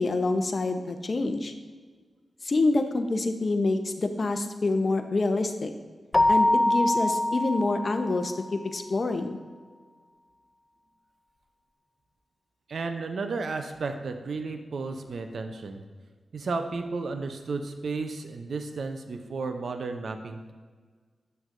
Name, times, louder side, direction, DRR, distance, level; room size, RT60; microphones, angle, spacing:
voice 1, 0.0-1.5 2.4-5.7 6.3-9.4, left 2 dB, 55° left, 7 dB, 0.7 m, -27 dB
Keyboard (musical), 6.1-8.6, left 1 dB, 35° left, 0.3 m, -24 dB
voice 2, 12.7-15.8 16.3-20.5, right 4 dB, 70° right, 6 dB, 0.6 m, -33 dB
9.3 x 6.2 x 2.6 m, 1.5 s
cardioid pair, 45°, 0 cm